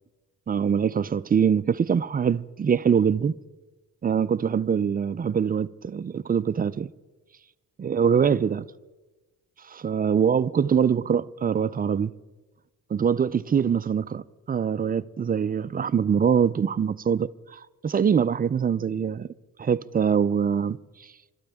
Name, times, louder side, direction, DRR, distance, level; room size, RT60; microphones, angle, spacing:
voice 1, 0.5-3.4 4.0-6.9 7.8-8.7 9.6-12.1 12.9-19.3 19.6-20.8, right 7 dB, 30° right, 0.4 m, -23 dB
27.0 x 13.0 x 3.5 m
cardioid pair, 105°, 33 cm